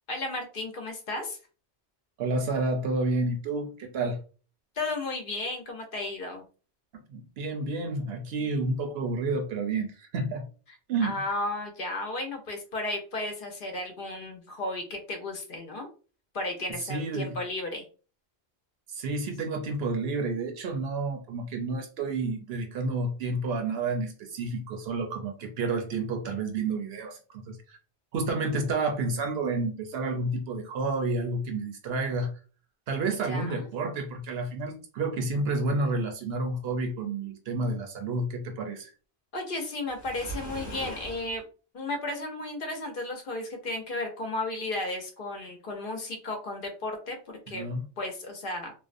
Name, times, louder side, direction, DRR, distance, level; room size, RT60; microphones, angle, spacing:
voice 1, 0.1-1.4 4.8-6.4 11.0-15.9 16.3-17.9 33.1-33.7 39.3-41.4 41.7-48.7, left 2 dB, 60° left, 3 dB, 0.7 m, -34 dB
voice 2, 2.2-4.2 7.1-10.4 10.9-11.2 16.8-17.4 18.9-27.8 28.1-32.3 32.9-38.9 47.5-47.8, right 3 dB, 70° right, 4 dB, 0.8 m, -30 dB
Waves surf, 39.9-41.4, right 1 dB, 15° left, 0.9 m, -40 dB
2.5 x 2.1 x 2.4 m, 0.37 s
omnidirectional pair, 1.1 m